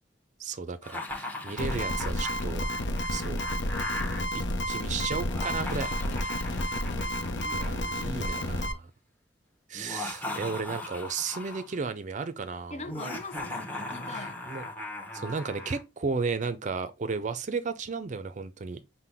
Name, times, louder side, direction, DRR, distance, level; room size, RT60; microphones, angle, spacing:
voice 1, 0.4-2.7 3.1-3.4 4.3-5.9 7.5-8.9 9.7-12.9 14.1-14.6 15.1-18.8, right 4 dB, 40° right, 0.4 m, -34 dB
Laughter, 0.8-4.2 5.2-8.5 9.7-11.8 12.9-15.8, left 2 dB, 10° left, 0.9 m, -38 dB
sound 1, 1.6-8.7, left 1 dB, 80° left, 0.7 m, -31 dB
voice 2, 6.9-7.6 12.7-14.4, left 3 dB, 40° left, 0.4 m, -42 dB
5.7 x 2.2 x 3.4 m
head